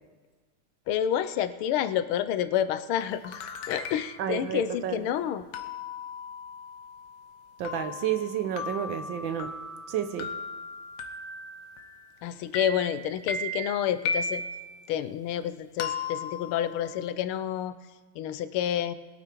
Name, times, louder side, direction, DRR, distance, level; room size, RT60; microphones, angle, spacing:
voice 1, 0.9-5.5 12.2-14.4 14.9-17.8 18.1-18.9, left 10 dB, 80° left, 12 dB, 1.5 m, -29 dB
sound 1, 3.0-4.3 5.5-12.2 12.5-14.7 15.8-17.1, left 3 dB, 60° left, 1.4 m, -37 dB
voice 2, 4.2-5.1 7.6-9.5 9.9-10.3, right 9 dB, 70° right, 9 dB, 1.4 m, -31 dB
21.5 x 8.8 x 4.5 m, 1.4 s
omnidirectional pair, 2.3 m